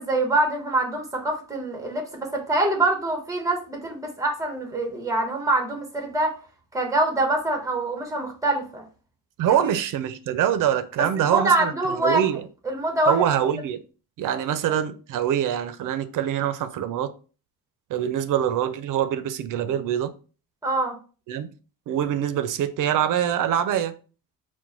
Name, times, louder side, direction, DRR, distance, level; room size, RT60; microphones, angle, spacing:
voice 1, 0.0-6.4 6.7-8.8 11.2-12.2 12.7-13.2 20.6-21.0, right 2 dB, 10° right, 1.0 m, -24 dB
voice 2, 9.4-11.7 12.0-12.4 13.1-13.8 14.2-17.1 17.9-20.1 21.3-21.5 21.9-23.9, right 10 dB, 60° right, 0.5 m, -24 dB
4.4 x 2.2 x 3.8 m
cardioid pair, 130°, 37 cm